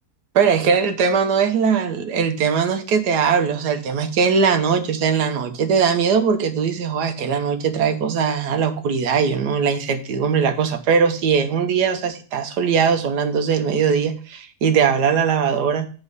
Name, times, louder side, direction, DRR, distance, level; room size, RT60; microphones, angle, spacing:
voice 1, 0.3-15.9, right 6 dB, 80° right, 1.5 m, -20 dB
8.1 x 4.4 x 5.3 m
omnidirectional pair, 1.7 m